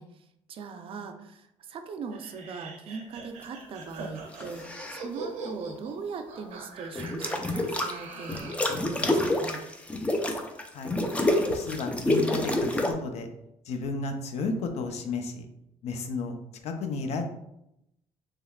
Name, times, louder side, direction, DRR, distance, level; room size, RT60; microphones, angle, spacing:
voice 1, 0.0-9.6, right 5 dB, 50° right, 7 dB, 0.4 m, -40 dB
sound 1, 2.1-8.7, right 3 dB, 80° right, 0.7 m, -42 dB
sound 2, 4.3-5.0 7.0-7.9 8.3-12.9, left 1 dB, 10° left, 0.4 m, -28 dB
voice 2, 11.5-13.3 13.7-15.5 15.8-16.4 16.6-17.2, left 3 dB, 70° left, 6 dB, 0.5 m, -33 dB
3.5 x 3.1 x 2.3 m, 0.82 s
cardioid pair, 100°, 12 cm